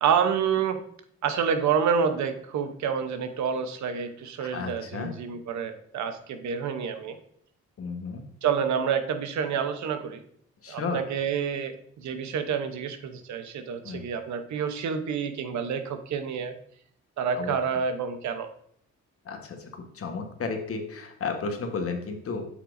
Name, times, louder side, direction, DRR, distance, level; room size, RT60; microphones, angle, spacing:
voice 1, 0.0-0.8 1.2-7.2 8.4-10.2 10.7-16.5 17.2-18.5, right 7 dB, 70° right, 8 dB, 0.9 m, -28 dB
voice 2, 4.4-5.1 7.8-8.2 10.6-11.0 13.8-14.0 17.3-17.6 19.2-22.4, left 4 dB, 50° left, 5 dB, 1.3 m, -33 dB
8.1 x 5.7 x 2.6 m, 0.64 s
cardioid pair, 90°, 30 cm